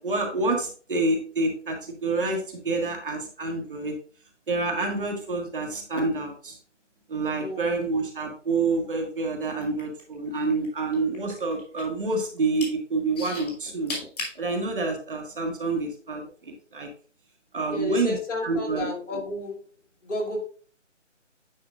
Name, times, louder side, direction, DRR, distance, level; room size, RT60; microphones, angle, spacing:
voice 1, 0.0-3.9 4.5-6.6 7.1-14.0 14.4-16.9 17.5-18.1 18.4-18.9, right 3 dB, 45° right, 1.4 m, -28 dB
voice 2, 7.4-7.7 17.7-19.7 20.0-20.5, left 2 dB, 70° left, 2.7 m, -32 dB
sound 1, 9.6-10.7 10.9-12.0 12.4-12.7 13.2-14.4 15.1-15.2, left 2 dB, 30° left, 1.9 m, -35 dB
8.8 x 5.0 x 2.4 m
figure-of-eight pair, 160°, 37 cm